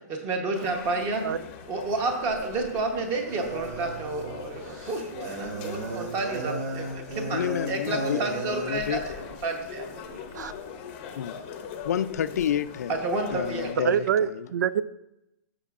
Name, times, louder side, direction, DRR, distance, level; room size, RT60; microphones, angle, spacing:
voice 1, 0.1-1.3 1.7-9.2 9.4-10.4 13.0-13.8, right 3 dB, 20° right, 4 dB, 1.0 m, -30 dB
sound 1, 0.5-13.7, left 7 dB, 25° left, 0.7 m, -42 dB
sound 2, 3.3-8.7, right 2 dB, 60° right, 3.2 m, -34 dB
voice 2, 7.3-9.0 11.2-11.4 11.8-13.0 13.3-14.0 14.3-14.5, left 9 dB, 60° left, 14 dB, 0.4 m, -29 dB
voice 3, 13.8-14.8, right 8 dB, 80° right, 17 dB, 0.4 m, -25 dB
15.0 x 6.1 x 2.5 m, 0.88 s
hypercardioid pair, 170°, 10 cm